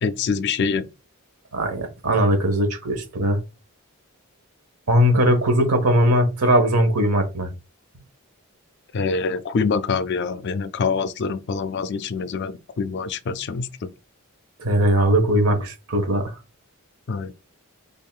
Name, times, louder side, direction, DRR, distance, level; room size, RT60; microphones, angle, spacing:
voice 1, 0.0-0.9 8.9-13.9 17.1-17.3, left 5 dB, 50° left, 0.4 m, -25 dB
voice 2, 1.5-3.4 4.9-7.5 14.6-16.3, equal, 85° right, 1.0 m, -19 dB
3.7 x 3.4 x 2.3 m
head